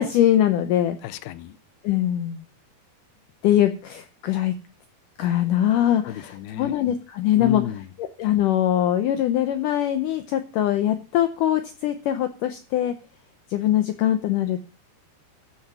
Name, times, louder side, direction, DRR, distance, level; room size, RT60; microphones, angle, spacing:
voice 1, 0.0-1.0 1.8-2.4 3.4-4.6 5.2-7.7 8.0-12.9 13.5-14.6, left 11 dB, 75° left, 2.0 m, -22 dB
voice 2, 1.0-1.6 6.0-6.8 7.3-7.8, left 13 dB, 90° left, 2.7 m, -32 dB
14.0 x 6.4 x 6.0 m
omnidirectional pair, 4.4 m